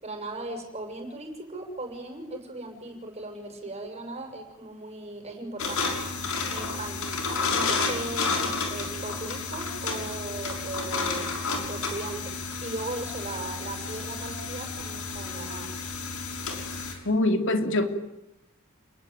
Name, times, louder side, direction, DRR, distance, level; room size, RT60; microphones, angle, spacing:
voice 1, 0.0-5.9 6.5-7.0 7.5-11.4 11.7-15.7, right 2 dB, 30° right, 4 dB, 6.7 m, -38 dB
sound 1, 5.6-16.9, left 4 dB, 80° left, 6.5 m, -31 dB
voice 2, 17.0-17.9, left 1 dB, 60° left, 6 dB, 3.1 m, -23 dB
29.5 x 20.5 x 9.3 m, 0.91 s
head